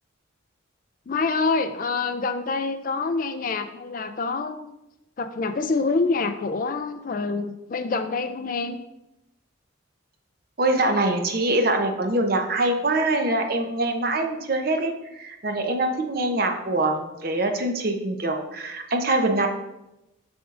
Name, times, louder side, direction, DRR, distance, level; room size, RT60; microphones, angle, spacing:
voice 1, 1.1-4.7 5.2-8.8, left 4 dB, 40° left, 9 dB, 0.4 m, -26 dB
voice 2, 10.6-19.5, right 2 dB, 45° right, 4 dB, 0.7 m, -24 dB
6.9 x 6.1 x 2.5 m, 0.91 s
head